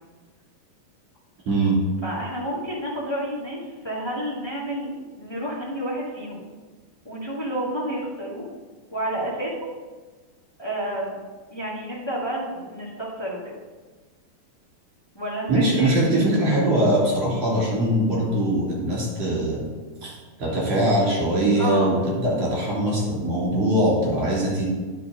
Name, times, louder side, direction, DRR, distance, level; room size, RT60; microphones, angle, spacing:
voice 1, 1.5-1.8 15.5-19.6 20.0-24.7, right 1 dB, 50° right, -5 dB, 4.1 m, -22 dB
voice 2, 2.0-6.4 7.0-8.4 8.9-9.7 10.6-11.2 11.5-13.6 15.1-15.9 21.5-21.9, right 1 dB, 30° left, -6 dB, 0.5 m, -30 dB
9.9 x 5.7 x 5.3 m, 1.3 s
omnidirectional pair, 4.0 m